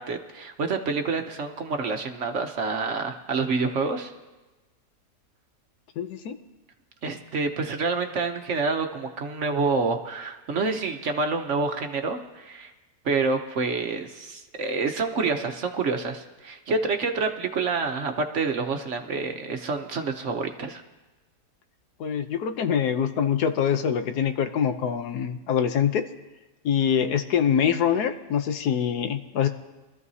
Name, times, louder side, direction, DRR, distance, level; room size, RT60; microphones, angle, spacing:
voice 1, 0.0-4.1 7.0-12.7 13.0-20.8, right 4 dB, 55° right, 5 dB, 1.0 m, -27 dB
voice 2, 6.0-6.4 22.0-26.1 26.6-29.5, left 8 dB, 80° left, 9 dB, 1.3 m, -24 dB
23.5 x 13.5 x 2.8 m, 1.1 s
omnidirectional pair, 1.7 m